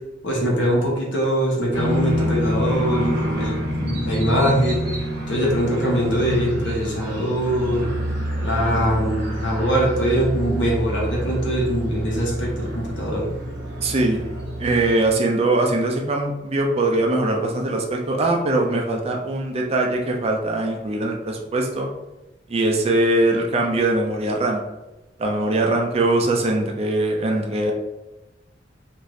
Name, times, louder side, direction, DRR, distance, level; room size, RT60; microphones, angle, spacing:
voice 1, 0.2-4.8 5.3-7.9 8.4-13.3, equal, 70° left, -3 dB, 1.0 m, -22 dB
sound 1, 1.7-14.9, equal, 65° right, 1.0 m, -27 dB
voice 2, 13.8-14.2 14.6-21.9 22.5-24.6 25.2-27.7, right 2 dB, 35° right, 1 dB, 0.4 m, -21 dB
2.6 x 2.5 x 3.1 m, 1.0 s
head